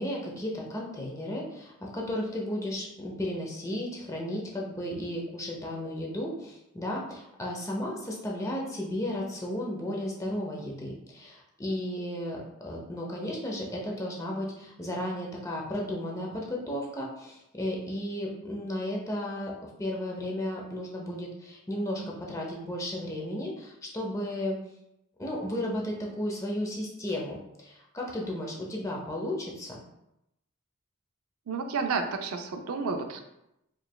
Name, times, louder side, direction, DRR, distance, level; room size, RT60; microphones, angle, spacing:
voice 1, 0.0-24.6 25.2-29.8, left 1 dB, 15° left, -2 dB, 0.6 m, -34 dB
voice 2, 31.5-33.2, right 4 dB, 85° right, 6 dB, 0.4 m, -31 dB
4.6 x 3.2 x 2.2 m, 0.84 s
head